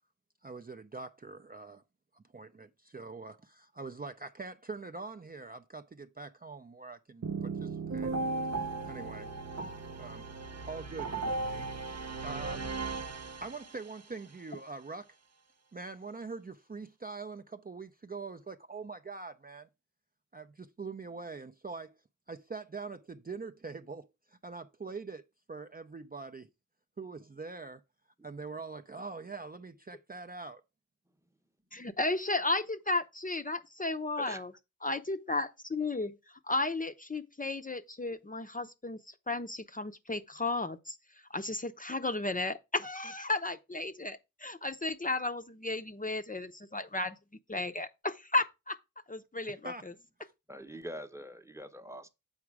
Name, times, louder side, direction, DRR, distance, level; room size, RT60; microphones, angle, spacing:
voice 1, 0.4-1.8 2.1-8.1 8.8-9.3 10.0-10.3 10.6-12.7 13.4-15.2 15.7-19.7 20.3-22.0 22.3-25.2 25.5-26.5 27.0-27.8 28.2-30.6 49.4-49.9, right 4 dB, 30° right, 0.5 m, -43 dB
sound 1, 7.2-14.0, right 3 dB, 55° right, 0.8 m, -36 dB
voice 2, 31.7-34.5 34.8-47.2 47.5-48.8 49.1-49.9, left 2 dB, 25° left, 0.6 m, -34 dB
voice 3, 50.5-52.1, equal, 10° right, 0.9 m, -43 dB
7.3 x 4.8 x 4.7 m
wide cardioid pair, 65°, 32 cm